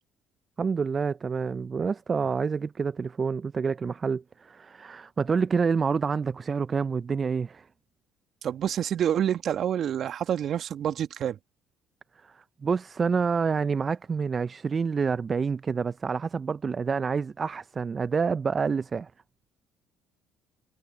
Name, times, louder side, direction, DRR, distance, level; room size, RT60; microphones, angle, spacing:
voice 1, 0.6-7.6 12.2-19.1, right 5 dB, 35° right, 0.6 m, -28 dB
voice 2, 8.4-11.4, right 9 dB, 55° right, 1.9 m, -27 dB
hypercardioid pair, 55°, 0 cm